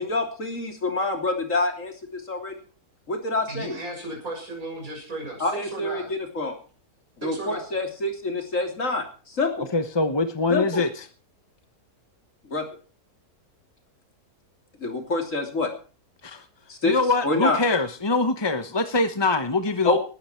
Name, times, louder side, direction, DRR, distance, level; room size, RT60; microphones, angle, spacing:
voice 1, 0.0-2.6 3.1-3.7 5.4-6.6 7.2-9.7 10.5-10.8 12.5-12.7 14.8-15.7 16.7-17.0 17.2-17.6 19.9-20.0, left 2 dB, 50° left, 4 dB, 3.5 m, -26 dB
voice 2, 3.5-6.1 7.2-7.8, right 2 dB, 60° right, 0 dB, 7.2 m, -35 dB
voice 3, 9.7-11.1 16.2-16.4 16.8-20.0, left 3 dB, 25° left, 9 dB, 0.7 m, -24 dB
18.5 x 12.5 x 4.4 m, 0.38 s
omnidirectional pair, 1.7 m